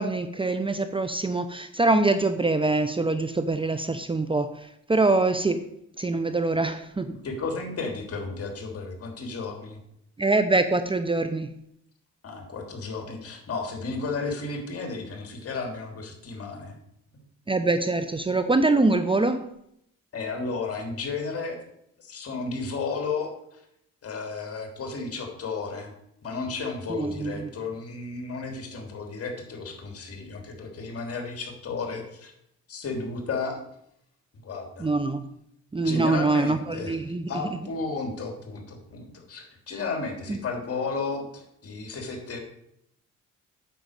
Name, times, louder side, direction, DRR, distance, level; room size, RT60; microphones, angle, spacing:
voice 1, 0.0-5.7 6.0-7.2 10.2-11.5 17.5-19.5 26.9-27.5 34.8-35.3 35.7-37.6 40.3-40.4, right 3 dB, 15° right, 10 dB, 0.7 m, -24 dB
voice 2, 7.2-9.8 12.2-16.8 20.1-21.6 22.0-23.6 24.0-25.9 26.2-32.3 32.7-33.6 34.4-34.9 35.8-37.0 37.3-42.4, left 4 dB, 50° left, 3 dB, 3.3 m, -33 dB
9.1 x 6.2 x 8.2 m, 0.76 s
cardioid pair, 90°, 30 cm